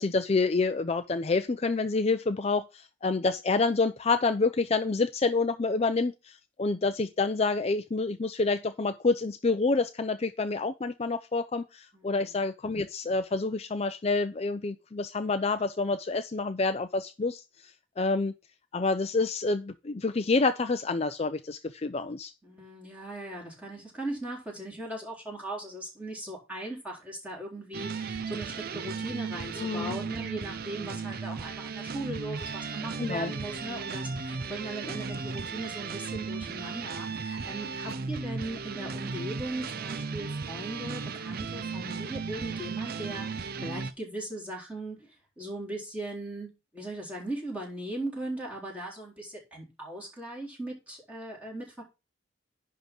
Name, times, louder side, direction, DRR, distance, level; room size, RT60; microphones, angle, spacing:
voice 1, 0.0-18.3 18.7-22.3 29.6-30.0 33.0-33.3, left 3 dB, 35° left, 0.5 m, -28 dB
voice 2, 11.9-12.3 22.4-51.8, right 1 dB, 10° right, 4.1 m, -39 dB
sound 1, 27.7-43.9, right 4 dB, 55° right, 0.6 m, -36 dB
10.5 x 3.7 x 5.9 m
head